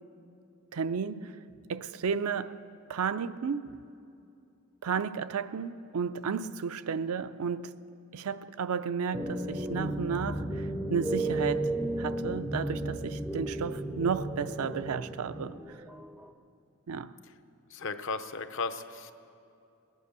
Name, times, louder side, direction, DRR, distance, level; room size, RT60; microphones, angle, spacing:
voice 1, 0.7-1.3 1.7-2.6 2.9-3.8 4.8-7.7 8.1-10.6 10.9-11.7 12.0-15.5 16.9-17.1, right 6 dB, 85° right, 0.5 m, -33 dB
sound 1, 9.1-16.3, right 2 dB, 5° right, 0.4 m, -34 dB
voice 2, 17.7-19.1, left 4 dB, 60° left, 0.7 m, -35 dB
20.0 x 9.2 x 6.8 m
head